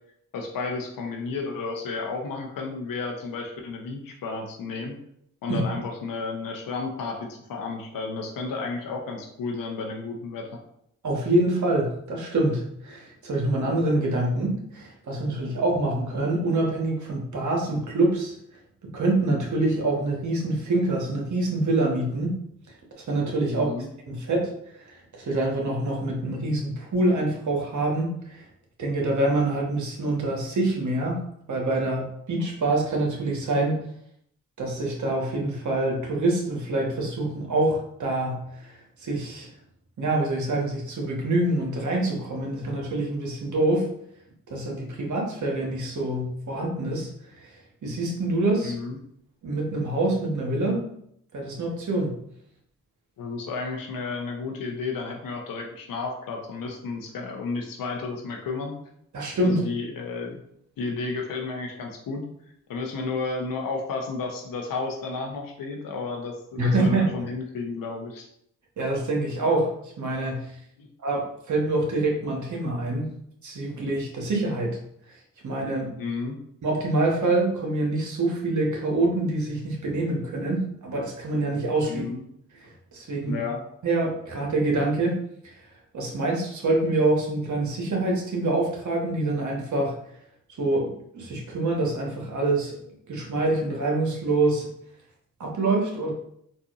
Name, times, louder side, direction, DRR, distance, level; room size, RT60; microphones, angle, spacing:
voice 1, 0.3-5.0 5.4-10.5 23.5-23.9 48.6-49.0 53.2-58.7 59.4-60.4 60.8-62.2 62.7-68.3 70.8-70.9 76.0-76.4 81.8-82.2 83.3-83.6, left 4 dB, 65° left, 2 dB, 0.9 m, -32 dB
voice 2, 11.0-18.3 18.9-22.4 22.9-23.7 24.1-24.5 24.8-28.4 28.8-31.2 31.5-33.8 34.6-39.5 40.0-43.9 44.5-47.1 47.8-48.7 49.4-50.8 51.3-52.2 59.1-59.6 66.6-67.1 68.8-69.7 70.0-70.5 71.0-73.1 73.4-74.8 75.4-75.9 76.6-82.1 82.6-83.4 83.8-85.2 85.4-85.5 85.9-90.0 90.6-92.8 93.1-94.7 95.4-96.1, right 2 dB, 55° right, -1 dB, 1.2 m, -25 dB
4.0 x 2.6 x 2.4 m, 0.71 s
supercardioid pair, 45°, 36 cm